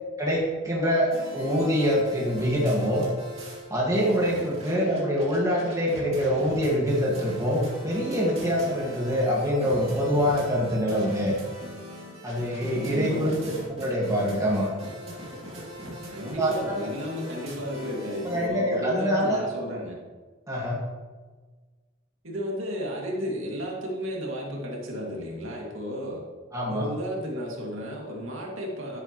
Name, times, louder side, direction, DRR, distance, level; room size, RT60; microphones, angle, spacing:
voice 1, 0.2-3.1 3.7-11.3 12.2-13.4 13.8-14.7 16.4-16.5 18.2-19.4 20.5-20.8 26.5-26.9, equal, 15° right, -3 dB, 1.7 m, -25 dB
sound 1, 1.1-3.7 3.9-18.5, equal, 30° right, 2.6 m, -41 dB
voice 2, 12.7-13.5 16.1-20.0 22.2-26.2 26.7-29.0, equal, 75° right, -1 dB, 2.2 m, -33 dB
10.0 x 9.6 x 3.0 m, 1.4 s
head